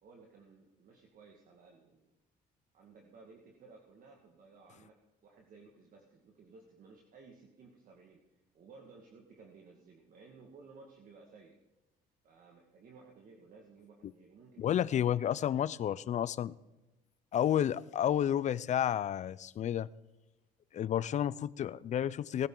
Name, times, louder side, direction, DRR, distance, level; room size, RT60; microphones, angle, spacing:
voice 1, 0.0-2.1 2.7-11.6 12.2-15.5, right 4 dB, 55° right, 1 dB, 1.9 m, -57 dB
voice 2, 14.6-16.5 17.3-19.9 20.7-22.5, left 10 dB, 45° left, 19 dB, 0.5 m, -31 dB
19.5 x 12.0 x 3.9 m, 1.0 s
cardioid pair, 110°, 17 cm